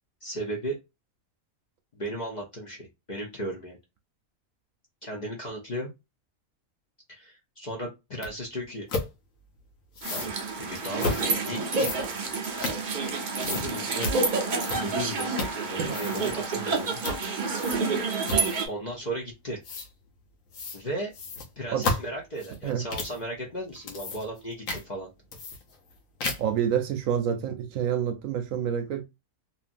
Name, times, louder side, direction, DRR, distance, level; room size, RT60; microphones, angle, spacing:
voice 1, 0.2-0.8 1.9-3.8 5.0-5.9 7.1-8.9 10.1-10.3 10.6-12.1 13.5-14.1 14.8-16.9 18.6-19.6 20.7-21.1 21.6-25.1, right 1 dB, 40° left, 0.6 m, -35 dB
sound 1, 8.2-8.3 8.9-9.1 9.9-10.3 11.0-11.3 11.7-13.1 13.4-13.7 14.0-14.2 14.6-15.0 15.3-15.6 15.9-16.3 17.0-17.2 17.6-17.9 18.3-18.7 19.6-19.9 20.5-20.8 21.1-23.2 23.7-24.4 24.7-24.8 25.3-25.9 26.2-26.6, left 3 dB, 65° left, 1.2 m, -32 dB
sound 2, 10.0-18.7, right 4 dB, 55° right, 0.5 m, -29 dB
voice 2, 26.4-29.0, right 9 dB, 70° right, 0.9 m, -27 dB
2.8 x 2.5 x 2.5 m
omnidirectional pair, 1.5 m